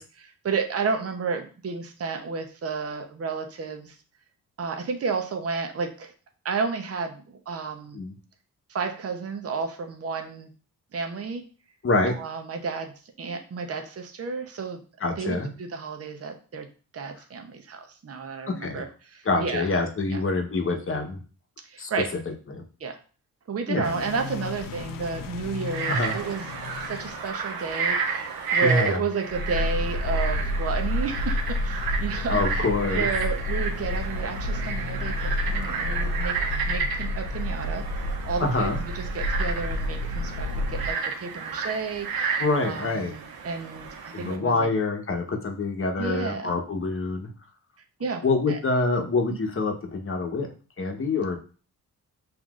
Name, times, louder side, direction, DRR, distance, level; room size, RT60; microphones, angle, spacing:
voice 1, 0.0-4.0 4.6-6.1 6.4-8.0 8.7-10.5 10.9-11.4 12.1-14.8 15.2-16.7 16.9-19.7 20.1-20.2 21.6-22.2 22.8-23.0 23.5-26.5 26.8-32.6 32.9-36.4 36.7-37.8 38.2-44.7 46.0-46.5 48.0-48.6 49.3-49.4, right 5 dB, 40° right, 5 dB, 0.7 m, -32 dB
voice 2, 11.8-12.1 15.0-15.5 18.6-18.8 19.2-21.2 21.8-21.9 22.5-22.6 23.7-23.9 25.9-26.2 28.6-29.0 32.3-33.1 38.4-38.8 42.4-43.1 44.1-47.3 48.2-50.5 50.8-51.4, left 3 dB, 35° left, 3 dB, 1.0 m, -26 dB
sound 1, 23.8-27.3 29.3-40.9, left 1 dB, 65° left, 0.5 m, -30 dB
Frog, 25.6-44.4, right 5 dB, 80° right, 0.7 m, -32 dB
5.8 x 2.6 x 2.4 m, 0.38 s
cardioid pair, 60°, 36 cm